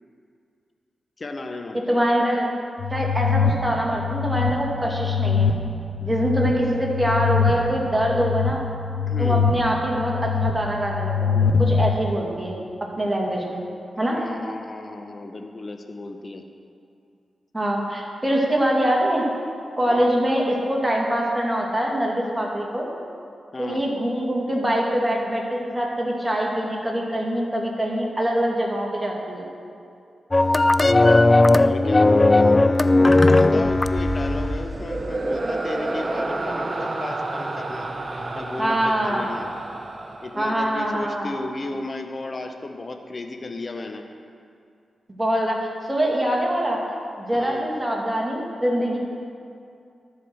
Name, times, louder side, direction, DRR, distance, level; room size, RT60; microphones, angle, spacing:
voice 1, 1.2-2.0 9.1-9.5 14.1-16.4 19.9-20.1 23.5-23.8 31.6-32.6 33.1-37.9 38.3-39.5 40.2-44.0 47.3-47.7, left 2 dB, 50° left, 5 dB, 0.8 m, -34 dB
voice 2, 1.7-2.5 2.9-5.5 6.0-8.6 9.2-12.6 13.0-13.7 14.0-14.2 17.5-19.2 19.8-22.9 23.6-29.5 38.6-39.2 40.4-41.3 45.2-46.8 47.2-49.0, equal, 20° right, -2 dB, 2.5 m, -24 dB
sound 1, 2.8-11.9, left 6 dB, 90° left, 0.5 m, -24 dB
sound 2, 30.3-34.7, left 2 dB, 35° left, 0.3 m, -17 dB
sound 3, 33.6-41.0, right 2 dB, 45° right, 0.8 m, -30 dB
13.0 x 4.9 x 6.3 m, 2.4 s
supercardioid pair, 40°, 0 cm